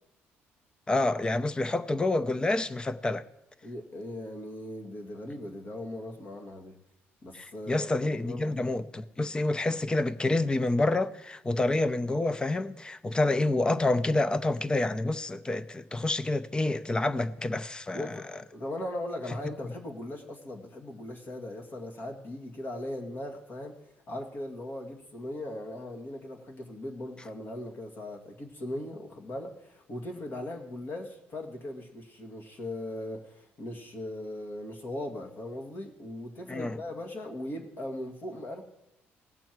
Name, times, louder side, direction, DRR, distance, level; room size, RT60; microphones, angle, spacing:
voice 1, 0.9-3.2 7.3-18.2 36.5-36.8, left 2 dB, 20° left, 0.6 m, -28 dB
voice 2, 3.6-6.8 7.2-7.9 8.2-8.5 17.9-23.8 24.1-38.6, left 1 dB, 45° left, 2.1 m, -39 dB
18.5 x 6.9 x 4.6 m
cardioid pair, 95°, 5 cm